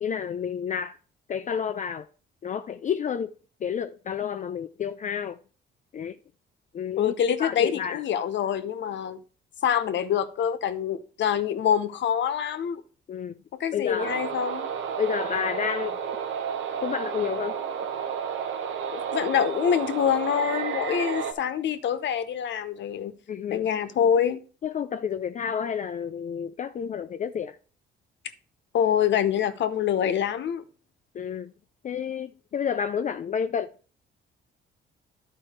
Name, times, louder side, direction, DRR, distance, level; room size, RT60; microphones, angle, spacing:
voice 1, 0.0-1.0 1.3-2.1 2.4-3.3 3.6-5.4 5.9-6.2 6.7-8.0 13.1-13.4 13.7-14.3 15.0-16.0 16.8-17.6 23.3-23.7 24.6-27.6 31.1-31.5 31.8-33.7, left 7 dB, 40° left, 0.4 m, -30 dB
voice 2, 7.0-9.2 9.6-12.8 13.6-14.7 18.9-23.1 23.5-24.4 28.7-30.6, left 8 dB, 65° left, 0.9 m, -25 dB
sound 1, 14.0-21.3, right 7 dB, 75° right, 1.1 m, -31 dB
11.0 x 4.5 x 4.3 m
cardioid pair, 90°, 20 cm